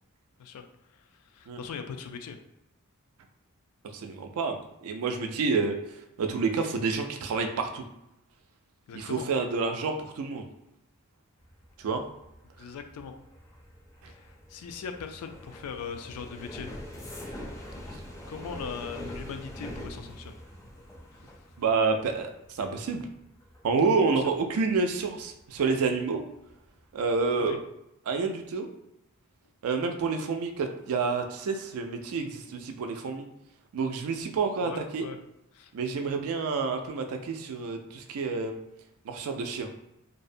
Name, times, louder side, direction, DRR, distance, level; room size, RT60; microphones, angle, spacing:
voice 1, 0.4-2.4 8.9-9.3 12.6-13.1 14.1-16.7 18.3-20.4 21.1-21.5 24.1-24.2 27.4-27.6 34.6-35.2 35.5-35.7, left 6 dB, 85° left, 7 dB, 0.3 m, -40 dB
voice 2, 3.9-5.8 6.2-7.8 8.9-10.4 11.8-12.0 21.6-23.0 23.6-26.2 26.9-27.6 28.1-28.7 29.6-33.3 33.7-35.1 35.7-38.6 39.0-39.7, right 4 dB, 70° right, 5 dB, 0.4 m, -28 dB
sound 1, 11.4-26.0 26.4-26.8 27.1-27.5, left 1 dB, 15° left, 0.4 m, -44 dB
2.6 x 2.0 x 2.5 m, 0.85 s
head